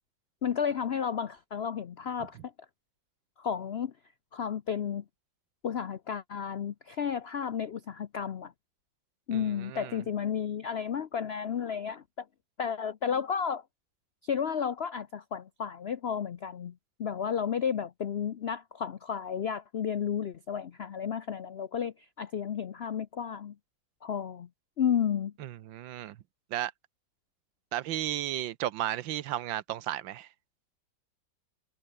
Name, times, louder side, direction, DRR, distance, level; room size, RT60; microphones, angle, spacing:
voice 1, 0.4-2.5 3.4-3.9 4.3-5.0 5.6-8.5 9.3-12.0 12.6-13.6 14.2-16.7 17.0-23.5 24.0-24.5 24.8-25.3, left 7 dB, 70° left, 0.6 m, -32 dB
voice 2, 9.3-10.0 25.4-26.2 26.5-26.7 27.7-30.3, right 13 dB, 85° right, 1.6 m, -34 dB
omnidirectional pair, 2.0 m